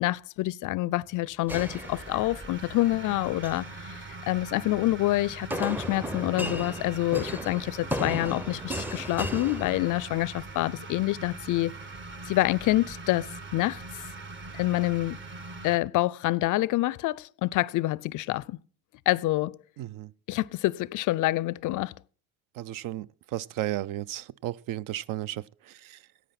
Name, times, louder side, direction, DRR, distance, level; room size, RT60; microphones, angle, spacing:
voice 1, 0.0-11.7 12.3-13.8 14.5-15.2 15.6-18.6 19.1-19.6 20.3-21.9, left 18 dB, 55° left, 0.4 m, -27 dB
sound 1, 1.5-2.6 3.2-3.7 5.5-10.3, equal, 5° right, 0.6 m, -35 dB
sound 2, 1.5-15.8, right 3 dB, 30° right, 1.3 m, -42 dB
voice 2, 19.8-20.1 22.6-26.0, right 14 dB, 55° right, 0.5 m, -34 dB
10.0 x 8.5 x 5.8 m
supercardioid pair, 85°, 39 cm